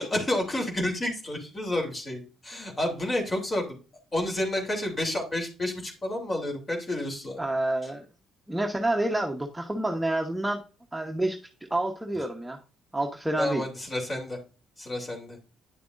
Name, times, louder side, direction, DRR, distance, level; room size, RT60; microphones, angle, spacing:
voice 1, 0.0-3.8 4.1-7.4 13.4-14.4 14.8-15.4, left 1 dB, 35° left, 1 dB, 3.1 m, -30 dB
voice 2, 7.4-8.0 8.5-10.6 10.9-11.4 11.7-12.6 12.9-13.6, right 1 dB, 10° right, 3 dB, 1.1 m, -28 dB
10.0 x 6.8 x 2.6 m, 0.34 s
supercardioid pair, 60°, 0 cm